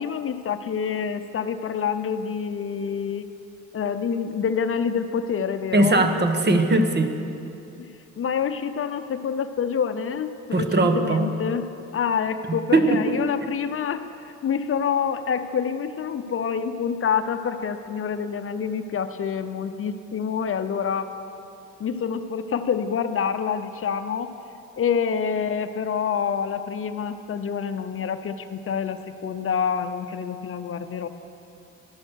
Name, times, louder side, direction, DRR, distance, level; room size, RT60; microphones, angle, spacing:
voice 1, 0.0-3.2 3.7-6.1 7.8-7.9 8.2-21.1 21.8-24.3 24.8-31.1, left 7 dB, 45° left, 9 dB, 0.7 m, -27 dB
voice 2, 5.7-7.1 10.5-11.2 12.7-13.0, right 2 dB, 35° right, 6 dB, 1.2 m, -19 dB
13.0 x 11.5 x 6.3 m, 2.7 s
cardioid pair, 90°, 30 cm